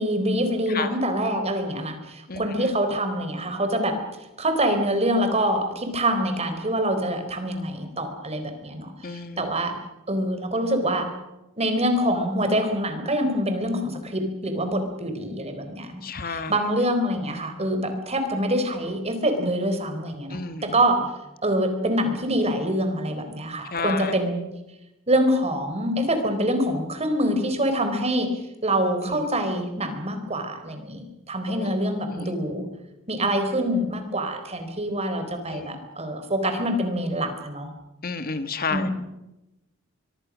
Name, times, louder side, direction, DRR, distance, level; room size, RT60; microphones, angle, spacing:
voice 1, 0.0-4.0 4.4-9.8 10.1-11.1 11.6-21.0 21.4-24.4 25.1-28.3 28.6-32.7 33.1-37.7 38.7-38.9, right 1 dB, 30° right, 7 dB, 4.1 m, -25 dB
voice 2, 9.0-9.5 16.0-16.5 20.3-20.8 23.7-24.1 29.0-29.2 31.5-31.7 32.1-32.2 35.5-35.7 38.0-38.9, left 4 dB, 45° left, 10 dB, 1.6 m, -31 dB
24.0 x 23.5 x 6.3 m, 0.95 s
head